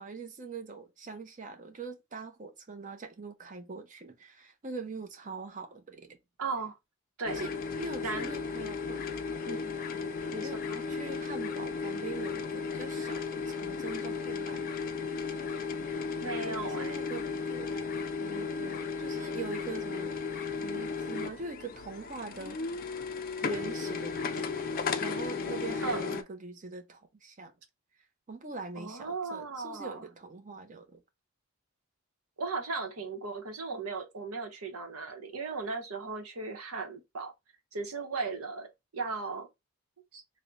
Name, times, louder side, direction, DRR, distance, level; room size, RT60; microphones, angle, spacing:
voice 1, 0.0-6.2 7.3-7.5 7.8-9.0 10.4-10.6 10.9-14.9 16.5-20.1 20.6-22.6 23.4-24.5 25.0-27.5 28.3-31.0, right 4 dB, 35° right, 0.6 m, -43 dB
voice 2, 6.4-6.7 7.2-7.5 8.0-8.3 9.5-9.7 10.3-10.8 16.2-17.0 25.8-26.2 28.7-30.0 32.4-37.3 37.7-39.5 40.1-40.2, right 4 dB, 85° right, 0.8 m, -36 dB
sound 1, 7.2-26.2, left 5 dB, 40° left, 0.3 m, -35 dB
3.3 x 2.1 x 3.8 m
head